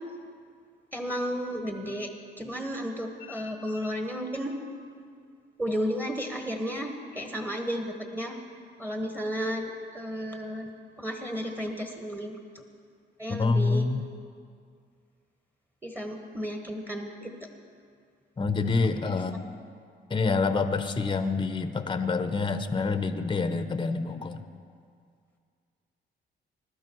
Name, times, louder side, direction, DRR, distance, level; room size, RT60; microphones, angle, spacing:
voice 1, 0.9-4.5 5.6-8.4 8.8-10.7 11.0-12.6 13.2-13.9 15.8-17.5 19.1-19.2, equal, 10° right, 3 dB, 1.5 m, -33 dB
voice 2, 13.3-14.0 18.4-19.4 20.1-24.4, left 4 dB, 25° left, 9 dB, 0.9 m, -27 dB
21.0 x 12.5 x 4.6 m, 2.2 s
cardioid pair, 90°, 20 cm